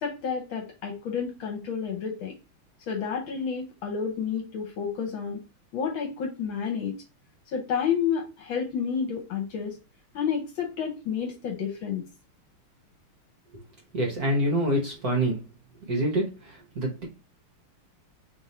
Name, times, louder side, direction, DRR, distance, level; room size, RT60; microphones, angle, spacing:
voice 1, 0.0-2.3 2.9-5.4 5.7-6.9 7.5-9.8 10.1-12.0, left 7 dB, 70° left, 1.5 m, -30 dB
voice 2, 13.9-15.4 15.9-16.3 16.7-17.0, right 1 dB, 50° right, 1.3 m, -25 dB
3.5 x 2.6 x 4.1 m
omnidirectional pair, 2.4 m